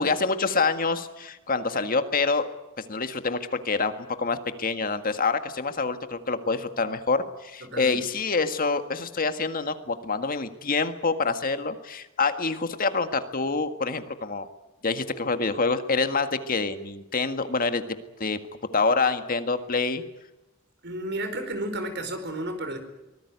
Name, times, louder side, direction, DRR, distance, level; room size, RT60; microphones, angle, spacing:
voice 1, 0.0-2.5 2.9-14.5 14.8-17.8 18.2-18.4 18.7-20.0, left 4 dB, 45° left, 9 dB, 1.7 m, -26 dB
voice 2, 7.6-8.0 20.8-22.8, right 1 dB, 55° right, 9 dB, 4.6 m, -32 dB
24.0 x 19.5 x 9.6 m, 0.99 s
head